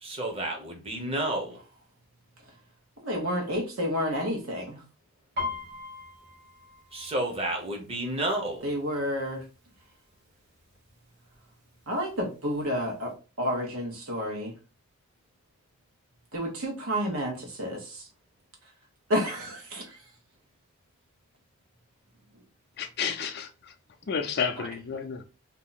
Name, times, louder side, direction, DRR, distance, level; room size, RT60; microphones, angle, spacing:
voice 1, 0.0-1.6 6.9-8.7, right 1 dB, 25° right, 0.8 m, -31 dB
voice 2, 3.0-4.8 8.6-9.4 11.9-14.5 16.3-18.1 19.1-20.0 24.6-24.7, equal, 80° right, 1.2 m, -30 dB
Piano, 5.4-9.0 9.4-9.8 10.1-10.7 11.3-11.4 11.7-12.7 13.1-13.2, left 4 dB, 55° right, 1.4 m, -39 dB
voice 3, 22.8-23.7 24.1-25.2, left 6 dB, 50° left, 0.4 m, -31 dB
2.8 x 2.3 x 3.9 m
head